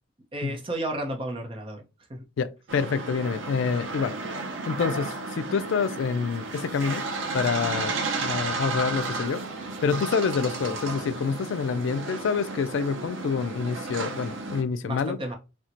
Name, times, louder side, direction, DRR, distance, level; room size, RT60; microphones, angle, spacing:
voice 1, 0.3-1.8 2.1-2.3 14.8-15.3, right 1 dB, 25° right, 0.6 m, -32 dB
voice 2, 2.4-7.1 7.3-8.0 8.2-9.4 9.8-15.2, left 5 dB, 65° left, 0.3 m, -27 dB
sound 1, 2.7-14.6, right 3 dB, 65° right, 0.6 m, -33 dB
4.2 x 2.1 x 2.5 m
head